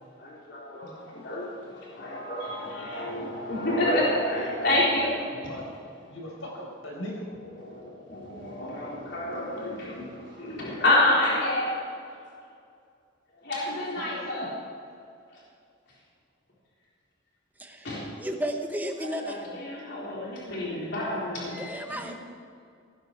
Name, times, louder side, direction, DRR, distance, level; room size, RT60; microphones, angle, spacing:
voice 1, 0.2-5.3 7.6-7.8 8.1-11.8 13.4-14.5 17.8-18.1 19.1-22.1, left 1 dB, 55° left, -6 dB, 3.8 m, -28 dB
voice 2, 3.0-3.5 5.3-5.6 6.1-7.2 13.9-14.5, left 1 dB, 85° left, -1 dB, 4.9 m, -40 dB
voice 3, 17.6-17.9 18.2-19.5 21.6-22.1, equal, 10° right, 4 dB, 1.1 m, -33 dB
17.0 x 14.5 x 4.7 m, 2.3 s
head